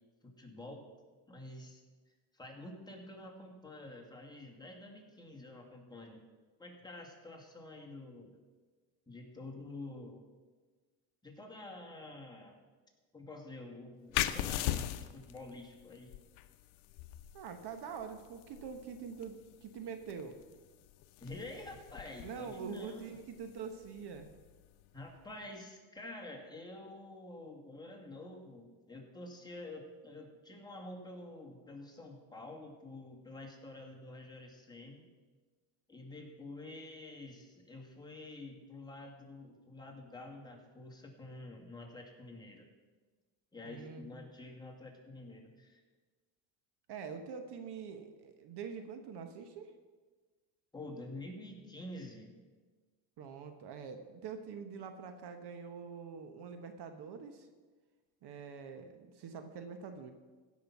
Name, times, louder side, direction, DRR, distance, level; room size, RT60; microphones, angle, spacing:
voice 1, 0.2-0.9 1.3-1.8 2.1-6.2 6.6-8.4 9.1-10.2 11.2-12.6 13.1-14.8 15.1-16.1 21.2-23.1 24.9-35.1 35.9-42.7 43.5-45.8 50.7-52.3, left 2 dB, 10° left, -1 dB, 2.3 m, -48 dB
sound 1, 14.1-25.4, left 13 dB, 70° left, 0.8 m, -41 dB
voice 2, 17.3-20.4 22.2-24.3 43.6-44.2 46.9-49.7 53.2-57.5 58.2-60.1, right 6 dB, 55° right, 7 dB, 1.2 m, -45 dB
15.5 x 6.3 x 5.9 m, 1.4 s
supercardioid pair, 100°, 49 cm